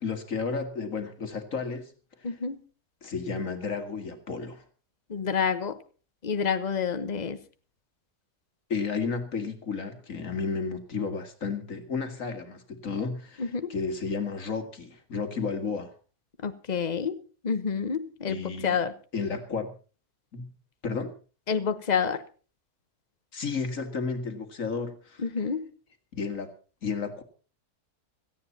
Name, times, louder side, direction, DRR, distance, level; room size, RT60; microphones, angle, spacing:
voice 1, 0.0-1.9 2.2-2.3 3.0-4.6 8.7-15.9 18.3-18.8 19.1-19.7 20.3-20.5 20.8-21.1 23.3-25.4 26.1-26.5 26.8-27.2, left 5 dB, 60° left, 8 dB, 2.3 m, -32 dB
voice 2, 2.2-2.6 5.1-5.8 6.2-7.4 13.4-13.7 16.4-17.2 17.4-18.9 21.5-22.2 25.2-25.7, left 6 dB, 30° left, 11 dB, 1.1 m, -28 dB
17.5 x 14.5 x 4.1 m, 0.36 s
omnidirectional pair, 1.6 m